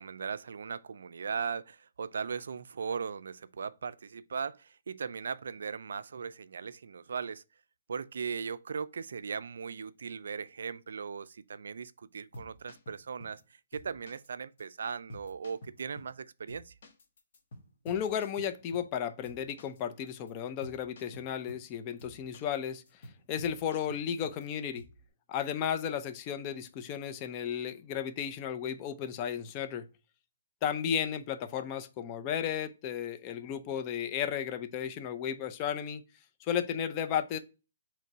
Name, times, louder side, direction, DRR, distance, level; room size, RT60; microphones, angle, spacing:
voice 1, 0.0-7.4 7.9-16.7, right 6 dB, 75° right, 0.3 m, -38 dB
sound 1, 12.1-13.4 13.7-14.3 14.6-14.7 15.1-16.2 16.5-19.0 19.2-19.8 20.1-20.3 20.6-21.7 22.0-22.6 22.9-24.5 24.7-25.0, equal, 50° left, 1.1 m, -50 dB
voice 2, 17.8-22.8 23.3-24.8 25.3-29.8 30.6-36.0 36.4-37.4, left 8 dB, 25° left, 0.4 m, -34 dB
3.8 x 3.1 x 4.4 m
hypercardioid pair, 165°, 0 cm